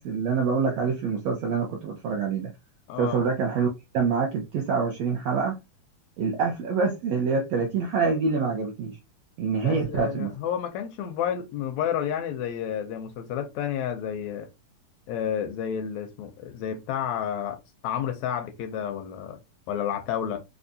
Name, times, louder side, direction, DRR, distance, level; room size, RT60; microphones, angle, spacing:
voice 1, 0.0-2.5 3.0-5.5 6.2-9.0 9.4-10.3, right 5 dB, 80° right, 1.5 m, -26 dB
voice 2, 2.9-3.2 9.6-14.5 15.1-17.6 17.8-19.4 19.7-20.4, left 9 dB, 80° left, 1.6 m, -30 dB
5.1 x 2.3 x 2.6 m
omnidirectional pair, 3.6 m